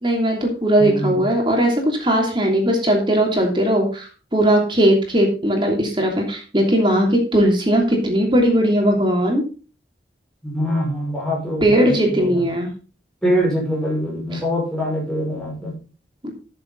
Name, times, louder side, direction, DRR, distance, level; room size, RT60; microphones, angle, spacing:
voice 1, 0.0-9.4 11.6-12.7 14.3-14.4 16.2-16.3, right 1 dB, 25° right, 1 dB, 3.0 m, -18 dB
voice 2, 0.8-1.2 10.4-12.3 13.2-15.7, equal, 5° left, -4 dB, 5.8 m, -23 dB
13.0 x 7.0 x 4.0 m, 0.36 s
head